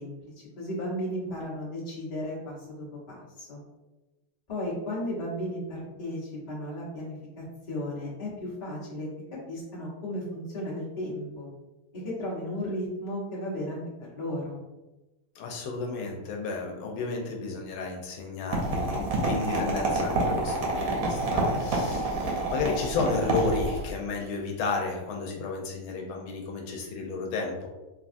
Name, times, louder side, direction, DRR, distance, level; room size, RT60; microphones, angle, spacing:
voice 1, 0.0-3.6 4.5-9.1 9.5-11.5 11.9-13.8 14.1-14.7, left 1 dB, 40° left, -7 dB, 0.5 m, -35 dB
voice 2, 15.4-27.7, left 4 dB, 80° left, 1 dB, 1.4 m, -32 dB
sound 1, 18.5-23.9, right 2 dB, 75° right, 0.8 m, -28 dB
3.5 x 2.3 x 2.5 m, 1.1 s
omnidirectional pair, 2.3 m